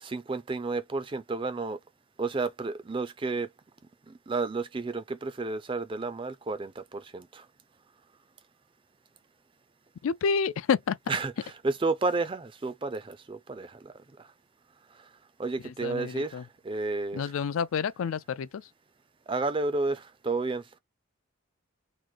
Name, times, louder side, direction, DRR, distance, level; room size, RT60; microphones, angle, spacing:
voice 1, 0.0-1.8 2.2-3.5 4.1-7.5 11.1-13.9 14.2-14.3 15.4-17.3 19.3-20.6, right 3 dB, 25° right, 0.4 m, -31 dB
voice 2, 10.0-11.0 15.6-16.4 17.1-18.5, left 6 dB, 75° left, 0.4 m, -29 dB
3.1 x 2.5 x 3.8 m
head